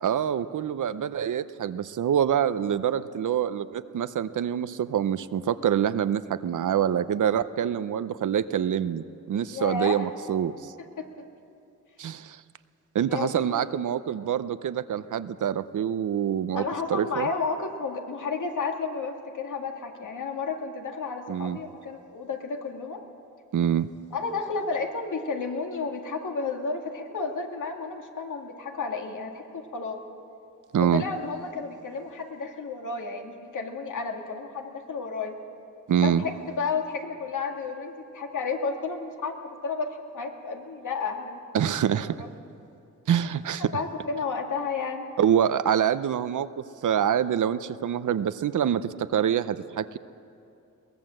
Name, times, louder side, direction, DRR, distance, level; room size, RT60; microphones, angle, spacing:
voice 1, 0.0-10.7 12.0-12.4 12.9-16.6 16.9-17.3 21.3-21.6 23.5-23.9 30.7-31.0 35.9-36.2 41.5-42.2 43.1-43.7 45.2-50.0, right 9 dB, 70° right, 13 dB, 0.7 m, -26 dB
voice 2, 9.5-10.0 11.0-11.3 13.1-13.8 16.5-23.0 24.1-30.0 30.9-35.4 36.0-41.7 42.2-42.3 43.7-45.1, left 4 dB, 70° left, 3 dB, 2.2 m, -32 dB
22.0 x 18.5 x 7.8 m, 2.6 s
wide cardioid pair, 110°, 32 cm